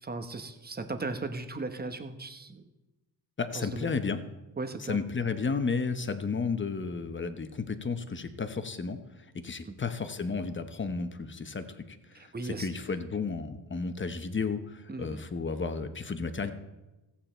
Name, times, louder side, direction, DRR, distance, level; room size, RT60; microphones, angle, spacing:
voice 1, 0.0-2.6 3.5-3.9 4.6-5.0 9.6-9.7 12.1-12.7 14.9-15.2, right 3 dB, 20° right, 7 dB, 1.0 m, -37 dB
voice 2, 3.4-4.2 4.8-16.5, left 4 dB, 25° left, 10 dB, 0.9 m, -33 dB
15.0 x 8.6 x 4.4 m, 1.1 s
cardioid pair, 100°, 45 cm